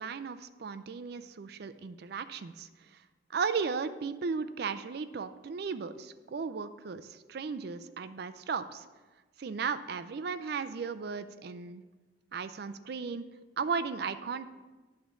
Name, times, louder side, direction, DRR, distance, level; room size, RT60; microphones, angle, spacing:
voice 1, 0.0-2.7 3.3-8.8 9.4-11.8 12.3-13.3 13.6-14.5, right 5 dB, 60° right, 12 dB, 0.4 m, -35 dB
10.0 x 3.7 x 7.0 m, 1.2 s
head